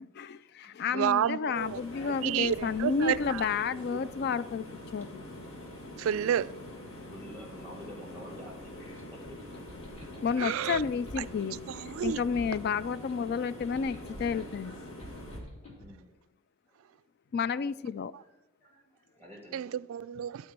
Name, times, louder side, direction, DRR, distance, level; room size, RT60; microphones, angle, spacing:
voice 1, 0.0-4.7 4.9-5.2 10.2-11.6 12.0-14.8 17.3-18.1, left 6 dB, 50° left, 0.3 m, -31 dB
voice 2, 0.9-1.8 2.2-3.4 6.0-6.5 10.4-10.8 11.2-11.3 11.7-12.2 19.5-20.4, right 9 dB, 75° right, 0.3 m, -30 dB
sound 1, 1.5-15.4, left 1 dB, 70° left, 2.0 m, -45 dB
voice 3, 7.0-9.4 15.7-16.1 17.3-17.4 18.2-19.8, equal, 10° left, 2.0 m, -49 dB
sound 2, 9.2-15.9, equal, 30° left, 2.8 m, -48 dB
11.5 x 4.3 x 6.0 m
head